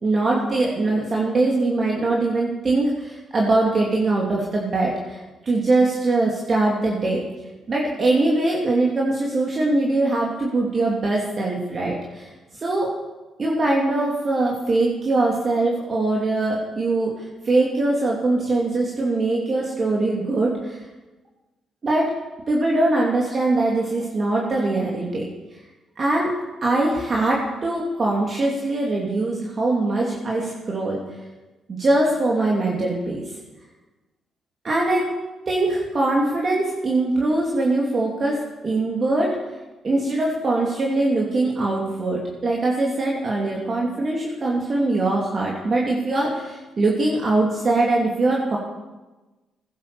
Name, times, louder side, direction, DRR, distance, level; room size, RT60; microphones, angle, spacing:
voice 1, 0.0-7.2 7.7-12.3 12.5-12.9 13.4-17.1 17.4-20.8 21.8-22.1 22.5-25.2 26.0-26.3 26.6-31.0 31.8-33.4 34.6-35.1 35.5-38.4 38.6-39.3 39.8-48.6, right 2 dB, 45° right, -3 dB, 2.9 m, -22 dB
15.5 x 10.5 x 6.9 m, 1.2 s
supercardioid pair, 65°, 0 cm